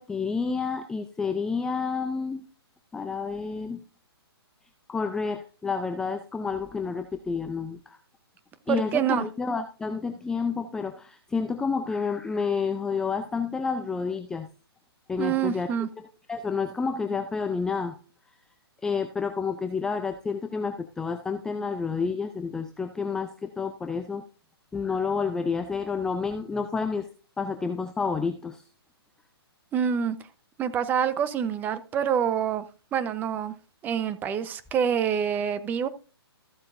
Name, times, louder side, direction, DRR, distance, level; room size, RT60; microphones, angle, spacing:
voice 1, 0.0-2.4 2.9-3.8 4.9-8.0 8.7-14.5 15.1-15.7 16.0-18.0 18.8-24.2 24.7-27.1 27.4-28.6, left 5 dB, 5° left, 0.5 m, -29 dB
voice 2, 8.7-9.3 15.2-15.9 29.7-30.2 30.6-32.6 32.9-33.5 33.8-35.9, right 8 dB, 15° right, 0.8 m, -26 dB
14.5 x 7.4 x 2.6 m
hypercardioid pair, 155°, 14 cm